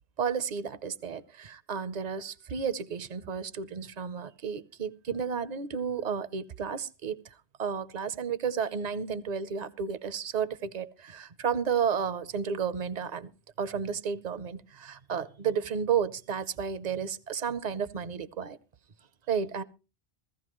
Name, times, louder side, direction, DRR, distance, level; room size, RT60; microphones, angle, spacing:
voice 1, 0.2-7.2 7.6-13.3 13.6-18.6 19.3-19.6, right 7 dB, 45° right, 0.8 m, -32 dB
16.0 x 15.0 x 3.1 m
omnidirectional pair, 1.1 m